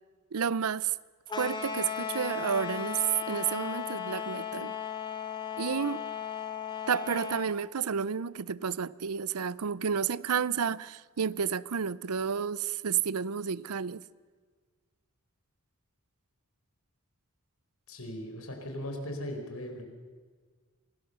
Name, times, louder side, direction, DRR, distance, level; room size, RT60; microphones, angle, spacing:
voice 1, 0.3-0.9 1.4-4.7 5.6-6.0 6.9-14.0, right 7 dB, 90° right, 0.6 m, -31 dB
sound 1, 1.3-7.5, left 7 dB, 20° left, 1.4 m, -36 dB
voice 2, 17.9-19.8, left 1 dB, 80° left, 4.7 m, -38 dB
25.5 x 19.0 x 6.8 m
head